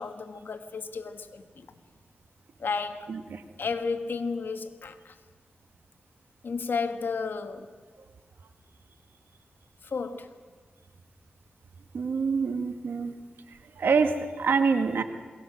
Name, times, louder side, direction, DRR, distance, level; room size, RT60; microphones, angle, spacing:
voice 1, 0.0-1.7 2.6-3.1 3.6-5.1 6.4-7.7 9.8-10.3, left 4 dB, 75° left, 1.4 m, -33 dB
voice 2, 3.1-3.4 11.9-13.1 13.8-15.0, right 5 dB, 85° right, 1.4 m, -26 dB
21.5 x 18.5 x 7.6 m
cardioid pair, 65°, 4 cm